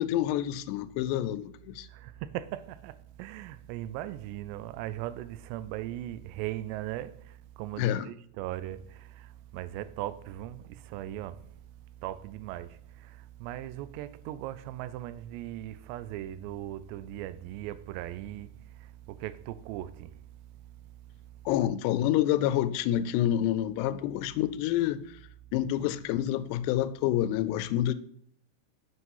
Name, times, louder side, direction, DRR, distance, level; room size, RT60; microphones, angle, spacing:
voice 1, 0.0-1.9 7.8-8.1 21.5-25.0 25.5-27.9, left 12 dB, 85° left, 2.7 m, -28 dB
voice 2, 1.9-11.4 12.0-18.5 18.8-20.1, right 13 dB, 90° right, 2.7 m, -39 dB
8.0 x 6.0 x 5.5 m
omnidirectional pair, 4.8 m